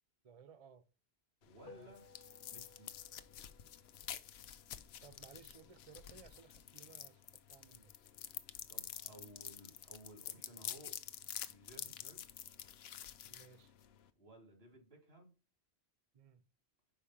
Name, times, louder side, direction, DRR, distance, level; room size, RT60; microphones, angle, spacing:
voice 1, 0.2-0.8 1.7-1.9 5.0-7.9 13.3-13.7 16.1-16.4, right 6 dB, 50° right, 0.4 m, -60 dB
sound 1, 1.4-14.1, left 10 dB, 75° left, 0.8 m, -49 dB
voice 2, 1.4-2.0 2.5-2.9 8.7-10.9 11.5-12.3 14.2-15.3, right 1 dB, 70° right, 2.7 m, -57 dB
sound 2, 1.7-6.3, left 3 dB, 45° left, 1.0 m, -63 dB
5.2 x 4.9 x 5.6 m
omnidirectional pair, 1.1 m